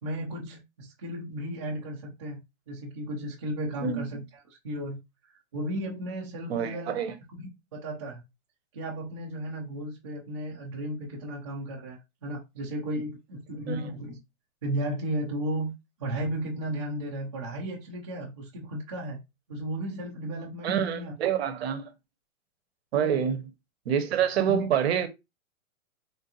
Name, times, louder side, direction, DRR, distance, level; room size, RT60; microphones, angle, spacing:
voice 1, 0.0-2.4 2.7-4.2 4.6-5.0 5.3-7.0 7.4-8.2 8.7-14.2 14.6-15.7 16.0-19.2 19.5-21.1 22.9-23.2 24.5-24.7, right 1 dB, 25° right, 0.4 m, -34 dB
voice 2, 6.5-7.1 13.7-13.9 20.6-21.9 22.9-23.4 23.9-25.1, right 8 dB, 50° right, 0.7 m, -27 dB
3.5 x 2.4 x 2.7 m
hypercardioid pair, 160°, 41 cm